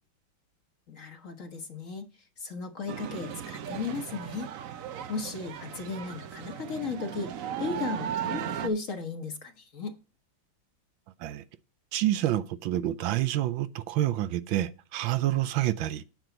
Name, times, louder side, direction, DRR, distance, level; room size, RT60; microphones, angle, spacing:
voice 1, 0.9-2.1 2.4-4.5 5.1-7.3 7.6-10.0, left 4 dB, 45° left, 1.4 m, -35 dB
sound 1, 2.9-8.7, right 9 dB, 60° right, 0.8 m, -36 dB
voice 2, 11.9-16.0, right 14 dB, 80° right, 1.5 m, -28 dB
9.2 x 7.7 x 3.9 m
omnidirectional pair, 2.2 m